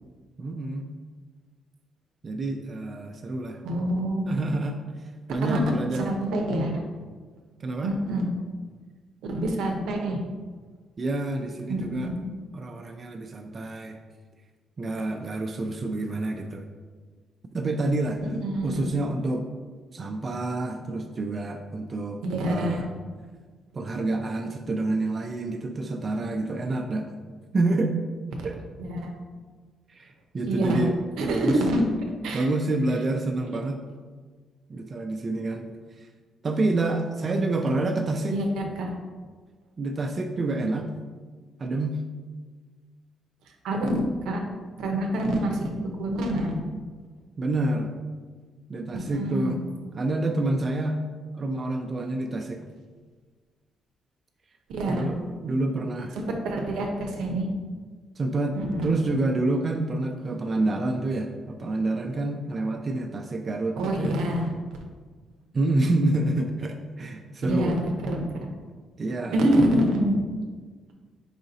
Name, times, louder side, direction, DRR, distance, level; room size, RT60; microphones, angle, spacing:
voice 1, 0.4-0.9 2.2-3.6 4.3-6.2 7.6-7.9 11.0-12.1 12.5-14.0 14.8-16.7 17.5-18.2 18.6-19.5 19.9-22.9 23.7-27.1 27.5-28.0 28.4-28.6 29.9-31.6 32.3-33.8 34.7-35.7 36.0-36.1 36.4-38.4 39.8-40.9 41.6-42.0 47.4-47.9 48.7-51.0 51.3-52.7 54.9-56.2 58.2-64.2 65.5-67.8 69.0-69.8, right 2 dB, 40° right, 4 dB, 0.3 m, -28 dB
voice 2, 3.6-4.5 5.4-5.6 6.1-6.7 7.8-8.3 9.2-10.2 11.7-12.2 18.4-18.8 22.2-22.8 28.8-29.1 30.5-30.9 31.2-31.8 32.2-32.5 38.3-38.9 43.6-44.4 44.8-45.6 45.8-46.6 48.9-49.5 54.7-55.0 56.1-57.5 58.5-59.0 63.8-64.5 67.5-67.8 68.1-68.2 69.3-70.2, right 1 dB, 85° right, 2 dB, 0.7 m, -26 dB
4.8 x 2.6 x 3.9 m, 1.5 s
cardioid pair, 90°, 0 cm